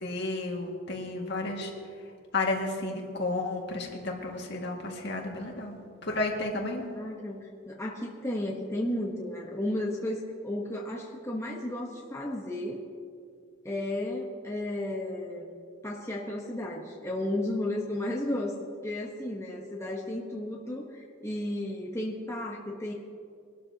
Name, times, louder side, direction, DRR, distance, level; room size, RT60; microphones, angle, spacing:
voice 1, 0.0-1.7 2.3-6.9, left 2 dB, 55° left, 0 dB, 2.0 m, -32 dB
voice 2, 6.9-12.8 13.6-15.6 15.8-18.6 18.8-22.9, left 1 dB, 15° left, -3 dB, 1.1 m, -33 dB
23.0 x 12.5 x 2.9 m, 2.3 s
head